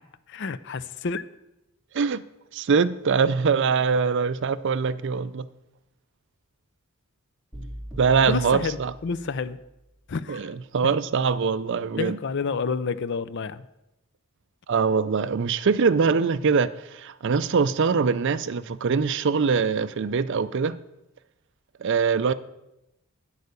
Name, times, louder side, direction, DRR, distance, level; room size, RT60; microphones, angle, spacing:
voice 1, 0.3-1.3 8.3-9.6 10.1-10.5 12.0-13.7, left 5 dB, 55° left, 0.5 m, -29 dB
voice 2, 2.5-5.5 8.0-8.9 10.3-12.2 14.7-20.8 21.8-22.3, right 5 dB, 55° right, 0.4 m, -23 dB
sound 1, 7.5-9.6, equal, ahead, 3.0 m, -40 dB
9.7 x 8.2 x 6.7 m
head